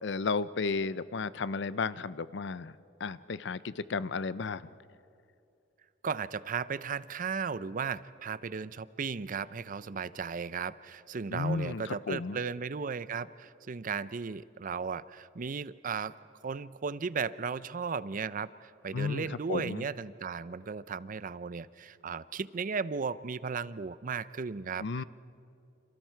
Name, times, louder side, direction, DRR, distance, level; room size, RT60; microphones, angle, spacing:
voice 1, 0.0-2.7 3.0-4.6 11.3-12.4 18.9-19.8 24.8-25.0, left 4 dB, 65° left, 16 dB, 0.6 m, -33 dB
voice 2, 6.0-16.1 16.4-25.0, right 5 dB, 45° right, 16 dB, 0.5 m, -36 dB
29.5 x 28.0 x 4.6 m, 2.6 s
head